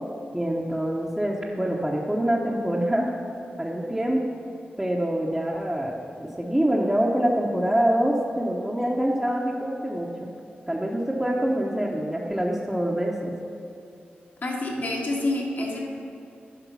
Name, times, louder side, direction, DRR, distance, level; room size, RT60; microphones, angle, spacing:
voice 1, 0.3-3.1 3.6-4.2 4.8-10.3 10.7-13.3, right 1 dB, 10° right, -4 dB, 0.9 m, -25 dB
voice 2, 14.4-15.8, left 2 dB, 60° left, -2 dB, 1.9 m, -27 dB
9.9 x 5.3 x 5.6 m, 2.6 s
cardioid pair, 65°, 4 cm